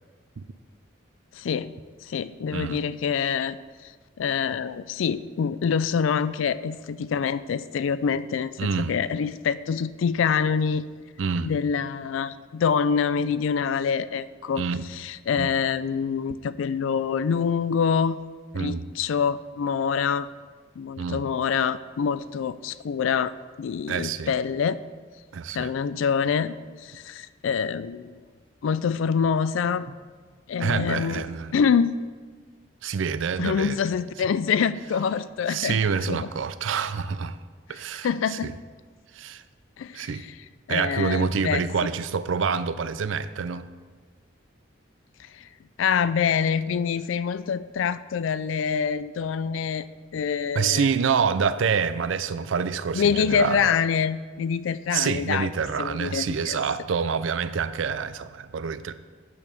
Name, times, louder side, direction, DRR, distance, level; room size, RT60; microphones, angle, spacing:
voice 1, 1.3-1.7 2.0-3.6 4.2-10.9 11.4-14.6 14.9-18.2 18.5-20.3 20.8-23.3 23.6-24.8 25.5-26.5 26.8-28.2 28.6-29.9 30.5-31.3 31.5-32.0 33.4-35.8 36.1-36.3 38.0-38.5 39.8-40.1 40.7-41.6 45.4-45.5 45.8-49.9 50.1-50.9 52.9-55.5 55.8-56.6, left 6 dB, 80° left, 16 dB, 0.3 m, -25 dB
voice 2, 8.6-9.0 11.2-11.5 14.6-14.8 15.4-15.5 18.5-18.8 21.0-21.2 23.9-24.3 25.3-25.7 30.6-31.5 32.8-33.8 35.5-37.4 37.7-38.5 39.1-39.4 39.9-40.3 40.7-43.7 50.5-53.7 54.9-58.9, right 6 dB, 75° right, 14 dB, 0.4 m, -27 dB
8.6 x 6.8 x 5.3 m, 1.5 s
head